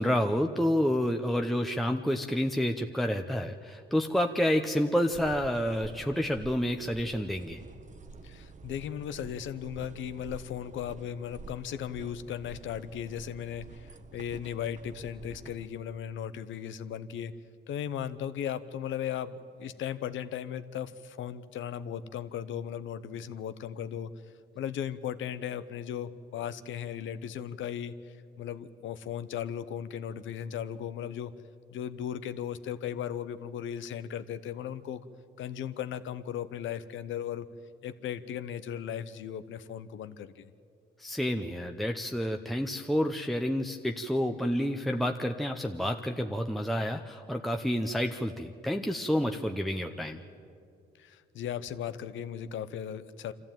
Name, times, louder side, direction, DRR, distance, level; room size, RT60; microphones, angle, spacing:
voice 1, 0.0-7.6 41.0-50.2, equal, ahead, 4 dB, 0.8 m, -29 dB
sound 1, 5.1-15.7, right 4 dB, 40° right, 1.1 m, -49 dB
voice 2, 8.2-17.3 17.7-24.1 24.5-31.3 31.7-35.0 35.4-37.5 37.8-40.5 51.0-53.3, left 9 dB, 75° left, 13 dB, 0.9 m, -37 dB
25.0 x 14.0 x 9.0 m, 2.4 s
cardioid pair, 90°, 20 cm